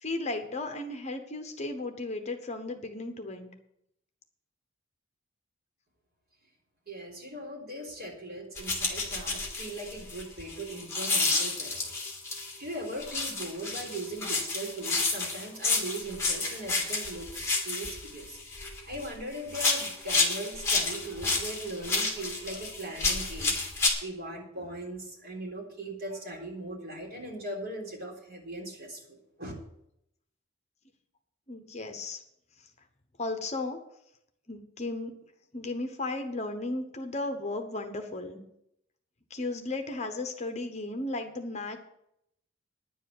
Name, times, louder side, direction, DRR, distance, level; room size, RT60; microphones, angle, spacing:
voice 1, 0.0-3.5 31.5-32.2 33.2-33.8 34.5-35.1 35.5-38.4 39.3-41.8, left 2 dB, 35° left, 6 dB, 1.0 m, -35 dB
voice 2, 6.9-11.9 12.6-18.4 18.9-29.5, right 1 dB, 50° right, -1 dB, 3.8 m, -39 dB
sound 1, 8.6-12.6 13.0-19.1 19.5-23.9, left 3 dB, 15° left, 2.2 m, -30 dB
10.0 x 7.6 x 7.8 m, 0.78 s
head